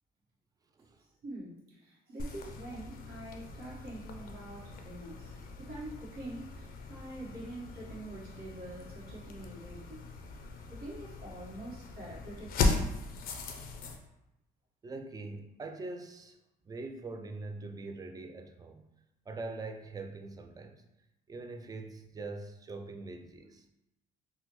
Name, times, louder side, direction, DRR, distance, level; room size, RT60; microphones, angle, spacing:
voice 1, 1.0-10.2 10.7-12.9, right 1 dB, 70° right, -5 dB, 1.1 m, -45 dB
sound 1, 2.2-14.0, left 3 dB, 60° left, 0.5 m, -38 dB
voice 2, 14.8-16.4 16.6-18.8 19.3-20.8 21.3-23.6, right 3 dB, 20° right, 5 dB, 0.3 m, -43 dB
3.6 x 2.1 x 2.9 m, 0.88 s
cardioid pair, 110°, 17 cm